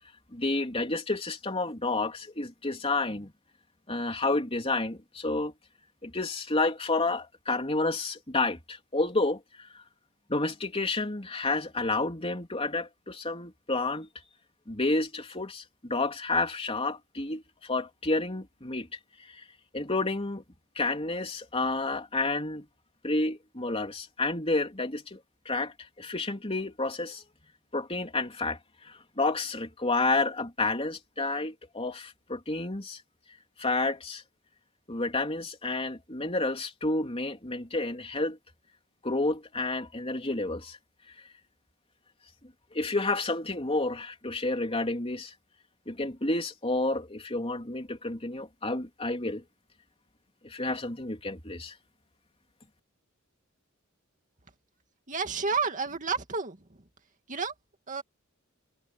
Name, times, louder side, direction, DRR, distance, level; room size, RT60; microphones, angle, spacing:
voice 1, 0.3-3.3 3.9-5.5 6.0-9.4 10.3-14.1 14.7-18.9 19.3-19.4 19.7-20.4 20.8-22.7 23.0-25.2 25.5-27.2 27.7-33.0 33.6-34.2 34.9-38.4 39.0-40.8 42.7-45.3 45.9-49.4 50.4-51.7, left 2 dB, 30° left, 3.5 m, -30 dB
voice 2, 55.1-56.6 57.3-57.5 57.9-58.0, right 5 dB, 40° right, 2.3 m, -30 dB
head